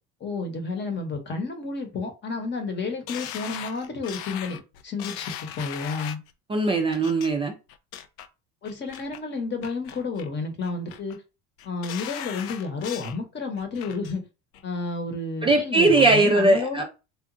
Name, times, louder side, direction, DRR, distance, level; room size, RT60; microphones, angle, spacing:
voice 1, 0.2-6.2 8.6-11.2 11.6-14.2 14.6-16.8, left 4 dB, 35° left, 0.9 m, -31 dB
sound 1, 3.1-6.3 6.9-7.3 7.7-8.3 8.6-9.2 9.6-10.3 10.6-11.2 11.6-13.2 13.6-14.1 14.5-14.6, left 10 dB, 80° left, 0.5 m, -38 dB
voice 2, 6.5-7.5 15.4-16.8, right 2 dB, 20° right, 0.4 m, -20 dB
2.9 x 2.4 x 2.5 m
supercardioid pair, 100°, 31 cm